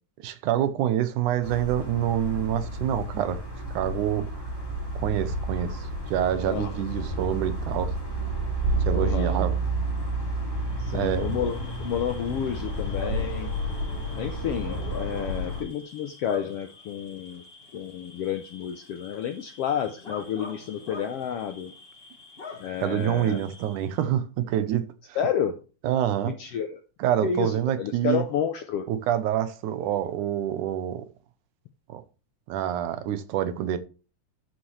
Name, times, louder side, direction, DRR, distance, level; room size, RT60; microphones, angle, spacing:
voice 1, 0.2-3.4 3.7-4.3 5.0-7.9 8.9-9.6 10.9-11.4 22.8-25.2 25.8-26.4 27.0-28.2 28.9-31.1 31.9-32.0 32.5-33.8, right 11 dB, 80° right, 2.3 m, -27 dB
sound 1, 1.4-15.6, right 2 dB, 10° left, 2.3 m, -30 dB
voice 2, 8.9-9.4 10.8-13.5 14.1-17.4 17.7-21.7 22.6-23.4 25.2-25.6 26.2-26.8 27.2-27.5 27.8-28.8, left 8 dB, 75° left, 1.4 m, -30 dB
Bark / Cricket, 10.7-24.0, left 3 dB, 30° left, 1.1 m, -44 dB
13.0 x 6.0 x 3.2 m
omnidirectional pair, 3.5 m